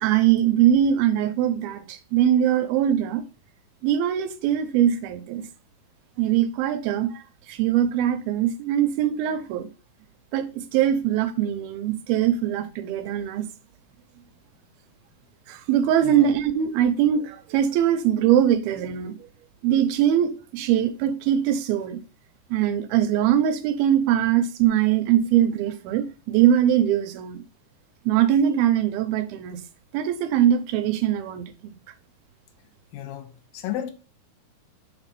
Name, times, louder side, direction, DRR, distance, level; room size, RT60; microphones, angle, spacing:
voice 1, 0.0-3.2 3.8-5.5 6.2-7.2 7.5-9.7 10.3-13.5 15.5-19.2 19.6-22.0 22.5-27.4 28.1-29.6 29.9-31.7, right 10 dB, 85° right, 2.6 m, -22 dB
voice 2, 16.0-16.3 32.9-33.9, left 11 dB, 80° left, 2.6 m, -33 dB
6.6 x 4.1 x 5.3 m
omnidirectional pair, 4.2 m